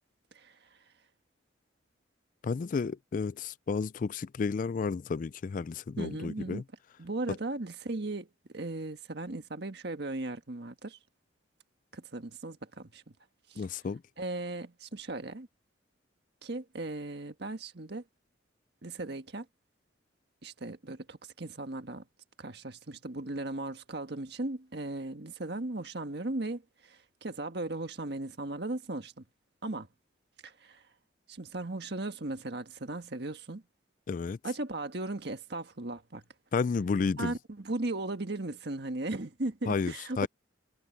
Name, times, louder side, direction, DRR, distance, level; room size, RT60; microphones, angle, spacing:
voice 1, 0.3-0.8 6.0-6.6 7.0-11.0 11.9-13.1 13.5-13.7 14.2-15.5 16.4-18.0 18.8-19.5 20.4-22.0 22.4-29.2 29.6-29.9 30.4-30.8 31.3-33.6 34.4-36.2 37.2-40.3, right 2 dB, 60° right, 1.6 m, -37 dB
voice 2, 2.4-6.6 13.6-14.0 34.1-34.4 36.5-37.3 39.7-40.3, left 5 dB, 45° left, 0.3 m, -32 dB
head